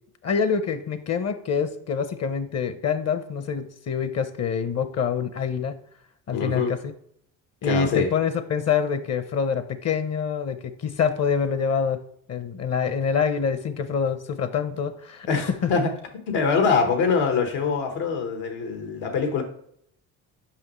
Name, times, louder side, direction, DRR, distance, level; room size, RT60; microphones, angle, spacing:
voice 1, 0.2-5.8 6.3-6.8 7.6-12.0 12.3-15.3 15.6-15.7, left 6 dB, 40° left, 11 dB, 0.7 m, -26 dB
voice 2, 6.3-6.8 7.6-8.1 15.3-15.9 16.3-19.4, left 5 dB, 85° left, 6 dB, 1.4 m, -24 dB
5.7 x 5.4 x 3.0 m, 0.67 s
supercardioid pair, 85°, 38 cm